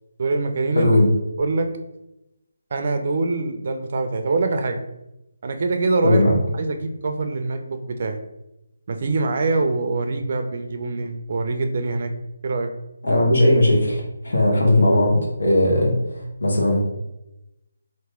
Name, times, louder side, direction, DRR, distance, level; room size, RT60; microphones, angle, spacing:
voice 1, 0.2-1.0 1.4-1.7 2.7-4.8 5.4-6.2 6.5-8.2 8.9-12.1 12.4-12.7, right 3 dB, 45° right, 6 dB, 0.4 m, -24 dB
voice 2, 0.7-1.1 6.0-6.4 13.0-16.8, left 1 dB, 70° left, -2 dB, 1.2 m, -18 dB
2.9 x 2.6 x 3.5 m, 0.91 s
figure-of-eight pair, 160°, 0 cm